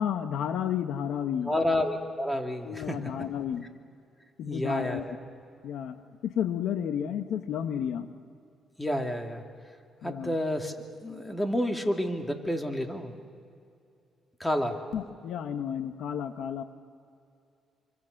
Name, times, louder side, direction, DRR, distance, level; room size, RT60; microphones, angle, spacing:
voice 1, 0.0-1.5 2.6-3.7 4.4-5.0 5.6-6.0 6.2-8.1 10.0-10.3 14.9-16.6, left 9 dB, 80° left, 8 dB, 1.2 m, -31 dB
voice 2, 1.4-3.1 4.5-5.2 8.8-9.4 10.0-13.1 14.4-14.8, left 1 dB, 10° left, 4 dB, 2.5 m, -30 dB
27.0 x 25.0 x 6.6 m, 2.4 s
cardioid pair, 90°, 0 cm